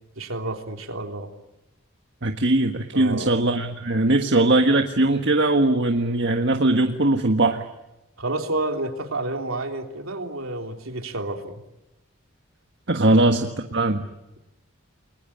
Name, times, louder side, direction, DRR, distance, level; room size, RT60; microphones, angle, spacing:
voice 1, 0.1-1.3 2.9-3.4 8.2-11.6 13.0-13.2, right 2 dB, 85° right, 4 dB, 3.4 m, -30 dB
voice 2, 2.2-7.6 12.9-14.0, right 2 dB, 60° right, 4 dB, 1.6 m, -20 dB
29.5 x 22.0 x 8.8 m, 0.94 s
head